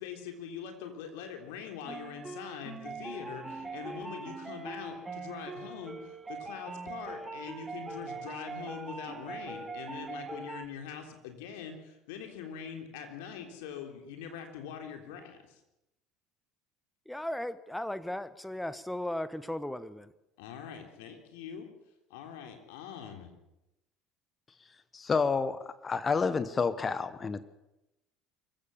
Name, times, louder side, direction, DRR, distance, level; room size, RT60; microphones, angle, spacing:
voice 1, 0.0-15.6 20.4-21.7 22.1-23.3, left 7 dB, 70° left, 3.6 m, -43 dB
sound 1, 1.9-10.7, right 3 dB, 15° right, 2.5 m, -42 dB
voice 2, 17.1-20.1, left 1 dB, 5° left, 1.1 m, -36 dB
voice 3, 24.9-27.4, left 5 dB, 30° left, 1.3 m, -29 dB
24.5 x 15.5 x 7.2 m
hypercardioid pair, 70°, 0 cm